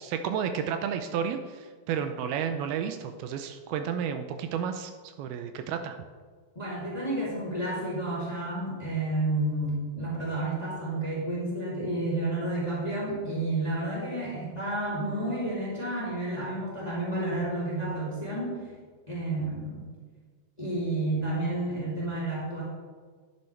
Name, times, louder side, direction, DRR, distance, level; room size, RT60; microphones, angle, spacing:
voice 1, 0.0-4.9 5.2-6.0, right 7 dB, 80° right, 7 dB, 2.4 m, -31 dB
voice 2, 6.5-18.6 19.1-19.9 20.6-22.6, right 2 dB, 15° left, -7 dB, 2.0 m, -30 dB
11.0 x 9.6 x 3.3 m, 1.5 s
omnidirectional pair, 4.6 m